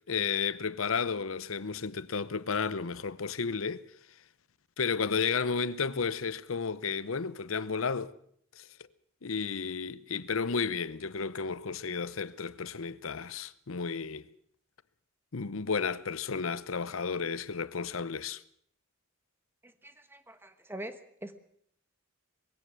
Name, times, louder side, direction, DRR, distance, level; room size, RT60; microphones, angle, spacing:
voice 1, 0.1-3.8 4.8-8.1 8.6-8.7 9.2-14.3 15.3-18.4, left 5 dB, 90° left, 0.8 m, -32 dB
voice 2, 19.8-21.4, right 1 dB, 10° right, 1.4 m, -43 dB
21.5 x 16.5 x 7.6 m
head